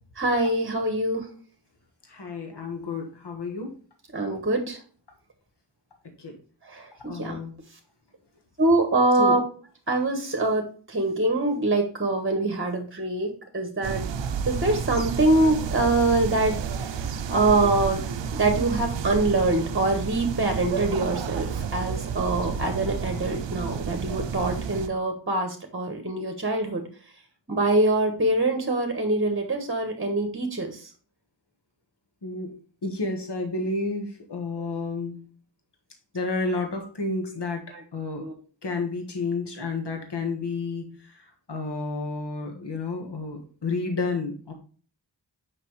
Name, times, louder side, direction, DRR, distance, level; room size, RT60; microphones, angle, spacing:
voice 1, 0.2-1.3 4.1-4.8 6.6-7.4 8.6-9.4 9.9-14.0 14.5-18.0 18.3-26.8 27.5-30.9 34.6-34.8 36.4-36.6 37.3-37.4 37.7-37.8 38.2-38.3, right 2 dB, 30° right, 4 dB, 1.2 m, -24 dB
voice 2, 2.1-3.7 6.2-6.4 7.1-7.5 9.2-9.4 32.2-32.5 32.8-35.2 36.1-37.6 37.9-38.2 38.6-44.5, left 3 dB, 70° left, 4 dB, 1.4 m, -31 dB
sound 1, 13.8-24.9, right 7 dB, 85° right, 0.5 m, -31 dB
6.0 x 5.4 x 3.1 m, 0.41 s
wide cardioid pair, 60°, 43 cm